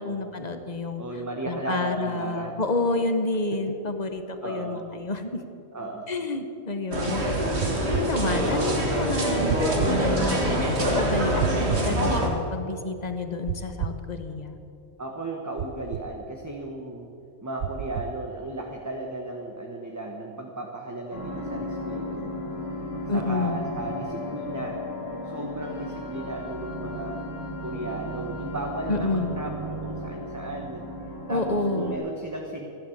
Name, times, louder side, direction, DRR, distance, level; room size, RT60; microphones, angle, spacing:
voice 1, 0.0-1.0 1.4-5.4 6.1-7.2 7.6-11.3 11.8-14.6 23.1-23.6 28.9-29.4 31.3-31.9, left 2 dB, 35° left, 7 dB, 1.0 m, -29 dB
voice 2, 1.0-2.5 4.4-4.9 5.7-6.1 8.0-8.1 11.2-11.5 15.0-17.1 17.4-22.4 23.1-24.8 25.2-27.2 27.6-30.9 31.3-32.7, right 2 dB, 15° right, 1 dB, 1.0 m, -35 dB
sound 1, 6.9-12.3, right 1 dB, 55° right, 2.0 m, -25 dB
sound 2, 7.6-8.1 9.5-10.0 11.4-11.9 13.5-14.0 15.6-16.1 17.6-18.1, right 10 dB, 75° right, 1.0 m, -30 dB
sound 3, 21.1-32.0, left 1 dB, 65° left, 3.2 m, -35 dB
14.5 x 11.0 x 7.2 m, 2.6 s
omnidirectional pair, 1.3 m